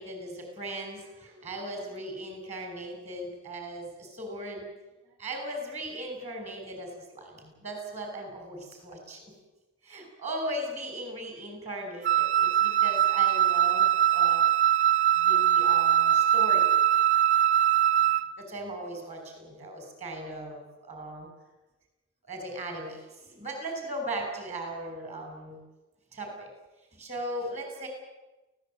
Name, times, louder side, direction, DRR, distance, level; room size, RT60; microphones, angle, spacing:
voice 1, 0.0-4.7 5.2-9.3 9.8-14.4 15.2-16.7 18.4-21.3 22.2-25.6 26.1-26.5 26.9-27.9, right 1 dB, 35° right, 3 dB, 7.0 m, -38 dB
Wind instrument woodwind instrument, 12.0-18.3, right 11 dB, 55° right, 1.0 m, -22 dB
24.0 x 17.5 x 9.2 m, 1.1 s
head